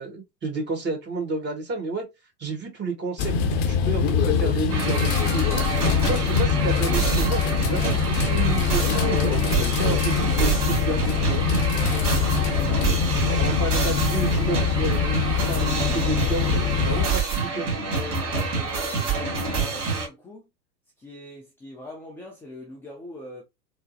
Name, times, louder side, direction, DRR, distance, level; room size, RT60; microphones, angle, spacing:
voice 1, 0.0-2.1 2.4-5.6 6.0-11.4 13.2-17.7, right 3 dB, 20° right, 1.6 m, -31 dB
sound 1, 3.2-17.1, left 6 dB, 40° left, 0.8 m, -23 dB
sound 2, 4.7-20.1, right 4 dB, 35° right, 2.2 m, -27 dB
voice 2, 5.7-6.4 6.7-7.1 11.7-12.2 17.9-20.5 21.0-23.4, left 2 dB, 5° left, 0.4 m, -42 dB
4.4 x 2.0 x 2.5 m
figure-of-eight pair, 95°, 48 cm